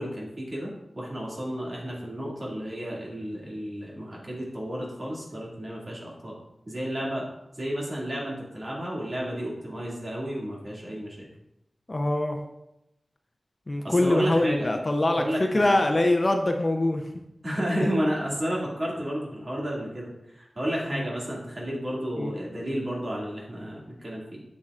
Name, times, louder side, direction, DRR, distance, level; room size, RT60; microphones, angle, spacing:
voice 1, 0.0-6.4 6.7-7.3 7.6-11.3 13.8-14.7 15.2-15.8 17.4-24.4, equal, 40° right, -4 dB, 2.2 m, -32 dB
voice 2, 11.9-12.4 13.7-17.0 17.8-17.9 20.9-21.0 22.2-22.3, left 1 dB, 35° left, 4 dB, 0.6 m, -23 dB
7.6 x 7.5 x 2.5 m, 0.87 s
wide cardioid pair, 95°, 0 cm